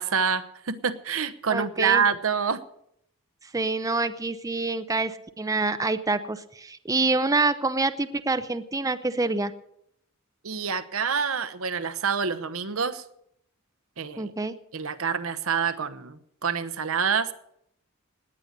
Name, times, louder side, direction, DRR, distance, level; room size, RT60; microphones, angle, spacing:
voice 1, 0.0-2.6 10.4-13.0 14.0-14.3 14.7-17.3, right 6 dB, 70° right, 11 dB, 1.0 m, -27 dB
voice 2, 1.5-2.0 3.5-9.5 14.2-14.5, right 3 dB, 15° right, 10 dB, 0.6 m, -26 dB
17.5 x 9.8 x 6.7 m, 0.74 s
head